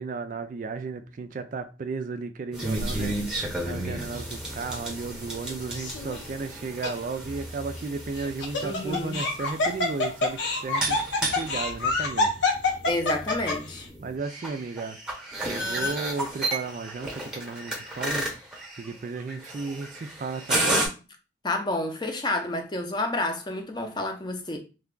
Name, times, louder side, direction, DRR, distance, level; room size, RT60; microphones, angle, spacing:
voice 1, 0.0-12.3 14.0-15.0 15.4-18.3 18.8-20.9, right 4 dB, 45° right, 0.3 m, -34 dB
sound 1, 2.5-20.9, right 1 dB, 5° right, 0.8 m, -33 dB
Laughter, 5.7-6.2 6.8-6.9 8.2-13.8, left 3 dB, 80° left, 1.0 m, -26 dB
voice 2, 8.6-9.2 12.9-13.9 21.4-24.6, left 2 dB, 25° left, 0.6 m, -29 dB
3.2 x 2.3 x 3.7 m
head